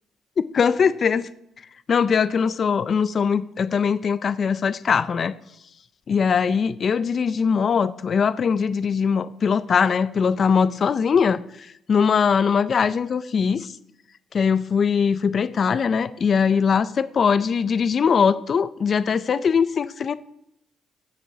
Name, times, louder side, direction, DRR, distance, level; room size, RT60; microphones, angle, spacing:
voice 1, 0.5-1.3 1.9-5.3 6.1-13.7 14.3-20.1, left 6 dB, 50° left, 0.4 m, -21 dB
19.0 x 7.4 x 2.7 m
cardioid pair, 90°, 0 cm